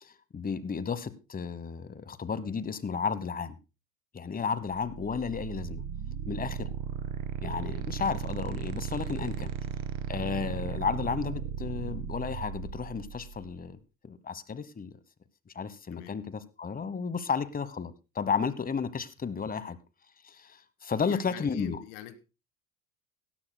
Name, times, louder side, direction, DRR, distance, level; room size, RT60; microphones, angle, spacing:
voice 1, 0.0-3.6 4.1-5.8 6.3-6.7 7.4-9.5 10.1-13.8 14.0-14.9 15.5-19.8 20.2-21.8, left 6 dB, 20° left, 16 dB, 1.1 m, -33 dB
sound 1, 4.7-13.6, right 8 dB, 50° right, 1.9 m, -36 dB
voice 2, 21.0-22.2, left 11 dB, 70° left, 13 dB, 1.6 m, -43 dB
17.0 x 13.5 x 2.2 m, 0.29 s
hypercardioid pair, 85°, 41 cm